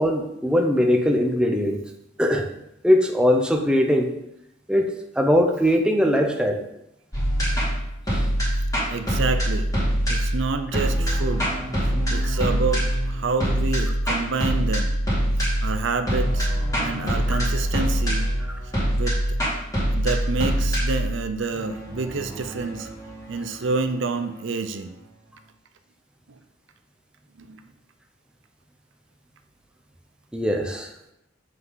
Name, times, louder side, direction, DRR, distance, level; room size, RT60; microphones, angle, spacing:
voice 1, 0.0-1.8 2.2-2.5 2.8-4.1 4.7-4.9 5.2-6.6 8.1-8.2 17.3-17.4 30.3-30.9, equal, 5° right, 2 dB, 0.7 m, -20 dB
sound 1, 7.1-24.3, equal, 15° left, 2.8 m, -24 dB
voice 2, 8.9-9.7 10.1-11.5 11.8-15.0 15.6-16.5 16.8-18.3 18.9-19.4 20.0-22.9 23.3-25.0 26.3-26.4 27.4-27.6, right 4 dB, 70° right, 8 dB, 0.6 m, -28 dB
7.5 x 5.6 x 3.9 m, 0.83 s
head